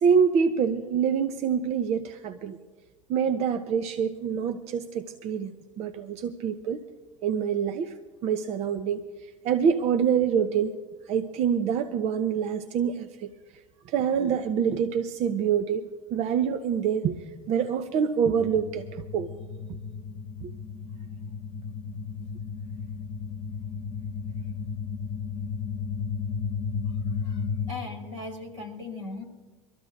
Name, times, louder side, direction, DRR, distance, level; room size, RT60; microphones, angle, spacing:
voice 1, 0.0-2.6 3.1-5.5 5.8-6.8 7.2-7.9 8.2-9.0 9.4-10.8 11.1-13.3 13.9-17.2 17.5-19.3 20.4-20.5, right 7 dB, 45° right, 8 dB, 0.8 m, -26 dB
sound 1, 18.3-27.7, left 5 dB, 45° left, 1.0 m, -34 dB
voice 2, 27.2-29.2, left 3 dB, 80° right, 0 dB, 4.8 m, -38 dB
25.0 x 14.0 x 2.7 m, 1.4 s
figure-of-eight pair, 70°, 16 cm